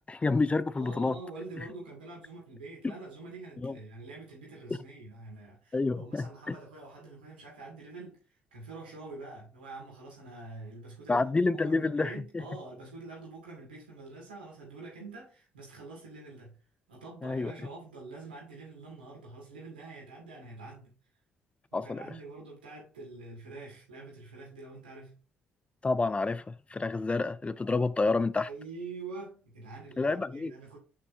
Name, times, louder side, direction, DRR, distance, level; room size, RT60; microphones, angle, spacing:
voice 1, 0.1-1.2 2.8-2.9 3.6-3.7 5.7-6.5 11.1-12.4 17.2-17.5 21.7-22.1 25.8-28.5 30.0-30.5, left 3 dB, 25° left, 0.5 m, -29 dB
voice 2, 0.7-8.2 8.5-16.6 16.9-20.9 21.7-25.1 27.7-27.8 28.5-30.8, right 3 dB, 90° right, 2.4 m, -46 dB
5.9 x 5.9 x 2.7 m
hypercardioid pair, 45°, 5 cm